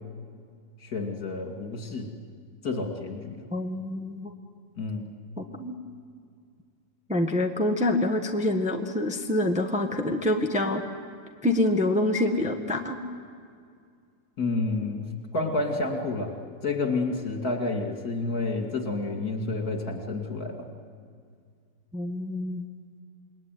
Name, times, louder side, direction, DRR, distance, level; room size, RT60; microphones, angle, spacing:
voice 1, 0.8-2.1 2.6-3.4 4.8-5.1 14.4-16.3 16.6-20.7, left 3 dB, 50° left, 2 dB, 3.1 m, -30 dB
voice 2, 3.5-4.3 5.4-5.7 7.1-10.8 11.4-13.0 21.9-22.6, left 1 dB, 5° right, 3 dB, 1.3 m, -26 dB
28.0 x 21.0 x 9.4 m, 2.2 s
omnidirectional pair, 2.0 m